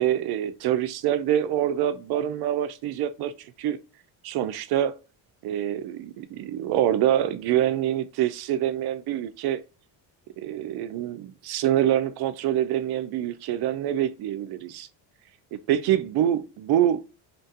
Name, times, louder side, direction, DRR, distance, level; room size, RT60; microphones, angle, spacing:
voice 1, 0.0-3.8 4.2-5.0 5.4-9.6 10.4-14.9 15.5-17.0, right 11 dB, 60° right, 0.5 m, -25 dB
2.9 x 2.2 x 2.7 m
cardioid pair, 110°, 44 cm